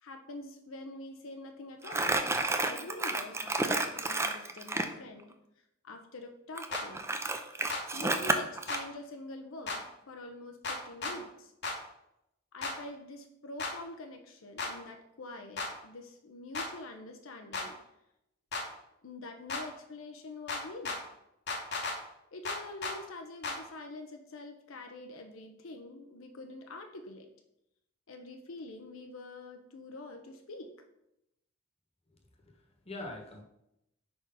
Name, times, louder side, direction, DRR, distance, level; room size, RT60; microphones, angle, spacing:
voice 1, 0.0-2.2 2.6-5.3 5.8-7.0 7.9-11.5 12.5-17.8 19.0-21.0 22.3-27.3 28.1-30.7, left 2 dB, 75° left, 5 dB, 0.6 m, -46 dB
Crumpling crinkling, 1.8-4.9 6.6-8.8, right 2 dB, 15° right, 0.4 m, -30 dB
sound 1, 6.7-6.8 7.7-7.8 8.7-8.8 9.7-9.8 10.6-11.2 11.6-11.8 12.6-12.7 13.6-13.7 14.6-14.7 15.6-15.7 16.5-16.7 17.5-17.7 18.5-18.7 19.5-19.6 20.5-21.0 21.5-22.0 22.4-23.0 23.4-23.6, left 3 dB, 55° left, 1.1 m, -34 dB
voice 2, 32.1-33.4, left 2 dB, 30° left, 2 dB, 1.1 m, -45 dB
4.8 x 4.4 x 5.5 m, 0.82 s
head